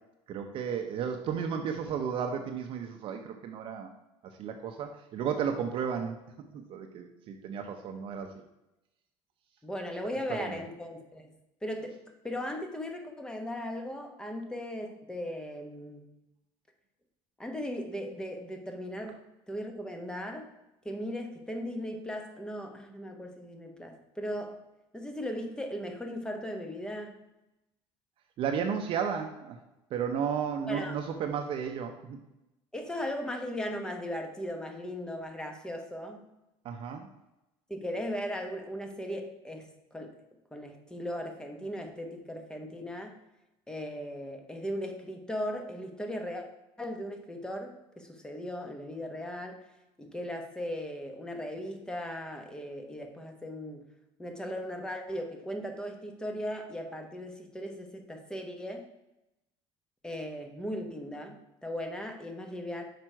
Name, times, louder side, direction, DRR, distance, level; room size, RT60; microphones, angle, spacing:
voice 1, 0.3-3.9 4.4-6.2 6.5-8.3 10.3-10.6 28.4-29.6 29.9-32.2 36.6-37.1, right 7 dB, 50° right, 4 dB, 0.7 m, -33 dB
voice 2, 9.6-11.4 11.6-16.1 17.4-20.5 20.8-24.6 24.9-27.2 30.7-30.9 32.7-36.3 37.7-40.2 40.5-43.2 43.7-46.5 46.8-49.6 50.0-53.9 54.2-58.9 60.0-62.8, equal, 5° left, 4 dB, 1.0 m, -37 dB
6.1 x 5.0 x 4.5 m, 0.93 s
cardioid pair, 135°, 11 cm